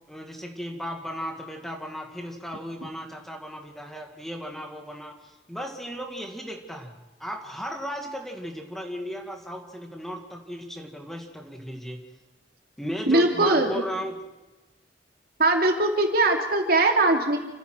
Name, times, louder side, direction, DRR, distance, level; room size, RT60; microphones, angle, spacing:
voice 1, 0.1-6.9 7.2-12.0 12.8-14.2, equal, ahead, 2 dB, 2.0 m, -35 dB
voice 2, 13.1-13.8 15.4-17.4, right 2 dB, 60° right, 3 dB, 2.8 m, -21 dB
29.0 x 15.0 x 6.2 m, 1.1 s
head